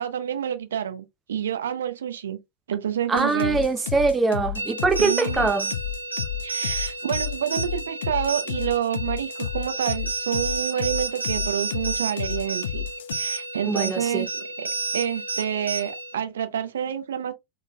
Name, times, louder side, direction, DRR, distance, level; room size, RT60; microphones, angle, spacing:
voice 1, 0.0-2.4 2.7-3.7 5.0-5.5 6.4-12.8 13.1-17.3, right 9 dB, 65° right, 0.7 m, -28 dB
voice 2, 3.1-5.7 13.7-14.3, right 4 dB, 15° right, 0.8 m, -23 dB
sound 1, 3.2-13.1, left 10 dB, 60° left, 0.6 m, -31 dB
sound 2, 4.6-16.2, right 3 dB, 80° right, 1.0 m, -31 dB
4.0 x 4.0 x 2.2 m
figure-of-eight pair, 90°, 0 cm